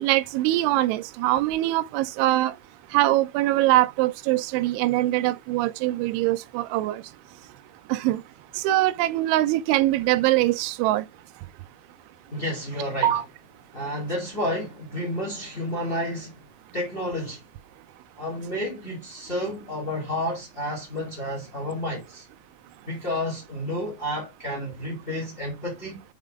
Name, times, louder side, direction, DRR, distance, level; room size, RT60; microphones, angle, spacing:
voice 1, 0.0-2.5 2.9-7.0 7.9-8.2 8.6-11.1 13.0-13.3, right 16 dB, 85° right, 3.0 m, -23 dB
voice 2, 12.3-13.2 13.7-17.4 18.2-22.2 22.8-26.0, left 1 dB, 35° left, 0.9 m, -31 dB
8.2 x 3.6 x 3.4 m
omnidirectional pair, 5.3 m